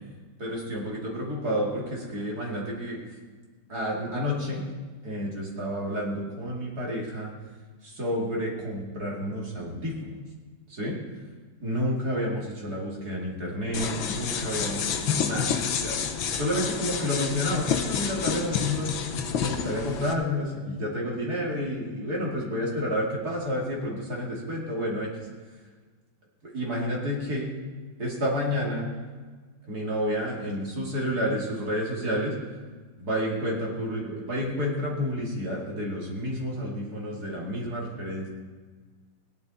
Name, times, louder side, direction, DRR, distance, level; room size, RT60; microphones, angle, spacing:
voice 1, 0.4-3.0 3.7-4.6 5.0-7.3 7.8-10.2 10.7-11.0 11.6-16.0 16.3-18.9 19.4-25.1 26.4-27.5 28.0-28.8 29.7-32.4 33.0-38.3, equal, 45° right, -3 dB, 2.8 m, -30 dB
sound 1, 13.7-20.1, left 7 dB, 70° left, 1.7 m, -29 dB
17.0 x 10.5 x 4.1 m, 1.4 s
omnidirectional pair, 2.3 m